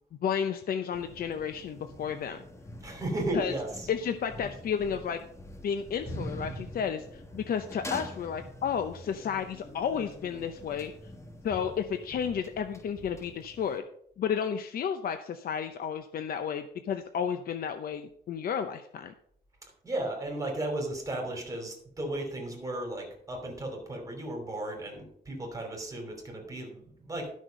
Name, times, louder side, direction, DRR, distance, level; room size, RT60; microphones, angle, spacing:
voice 1, 0.2-2.4 3.3-3.5 3.9-5.2 5.6-10.9 11.4-13.8 14.2-19.1, left 7 dB, 60° left, 8 dB, 0.7 m, -32 dB
sound 1, 0.9-13.8, left 1 dB, 15° left, 1.2 m, -45 dB
voice 2, 2.8-3.9 19.6-27.3, right 1 dB, 20° right, 1 dB, 3.0 m, -35 dB
12.0 x 6.4 x 5.2 m, 0.67 s
wide cardioid pair, 155°, 17 cm